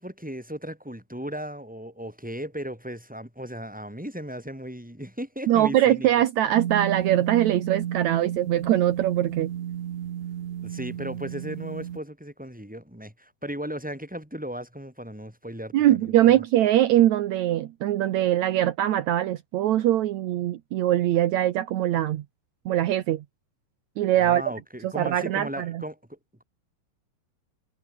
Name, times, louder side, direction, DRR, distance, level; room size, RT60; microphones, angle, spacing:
voice 1, 0.0-6.1 10.6-16.1 24.1-26.4, equal, ahead, 7.5 m, -36 dB
voice 2, 5.5-9.5 15.7-22.2 22.7-23.2 24.0-24.4 24.8-25.8, right 13 dB, 75° right, 1.7 m, -22 dB
sound 1, 6.5-12.0, right 10 dB, 55° right, 2.6 m, -32 dB
omnidirectional pair, 4.6 m